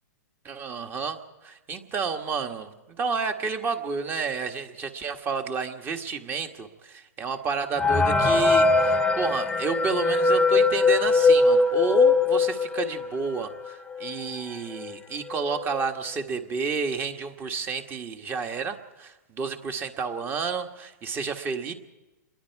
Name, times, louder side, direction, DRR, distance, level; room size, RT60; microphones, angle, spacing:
voice 1, 0.4-21.7, right 5 dB, 20° right, 6 dB, 1.6 m, -31 dB
sound 1, 7.8-13.2 13.7-13.8 14.0-14.1 14.8-14.9 15.3-15.6, left 3 dB, 10° left, 0.8 m, -21 dB
27.5 x 21.5 x 4.8 m, 1.0 s
hypercardioid pair, 135°, 10 cm